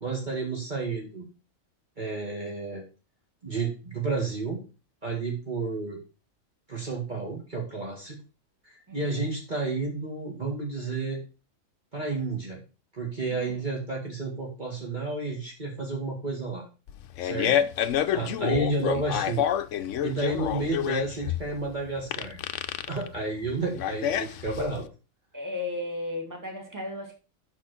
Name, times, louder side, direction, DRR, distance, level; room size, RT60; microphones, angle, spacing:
voice 1, 0.0-1.3 2.0-2.8 3.4-4.6 5.0-6.0 6.7-8.2 8.6-11.2 11.9-12.6 12.9-16.7 17.2-17.5 18.1-19.5 20.0-22.4 22.9-24.8, right 3 dB, 35° right, -2 dB, 2.1 m, -31 dB
voice 2, 8.9-9.2 13.3-13.6 17.3-17.7 25.3-27.1, left 2 dB, 15° right, 1 dB, 2.3 m, -36 dB
Fart, 16.9-24.8, left 10 dB, 70° left, 0.9 m, -28 dB
6.3 x 6.2 x 6.0 m, 0.33 s
omnidirectional pair, 1.4 m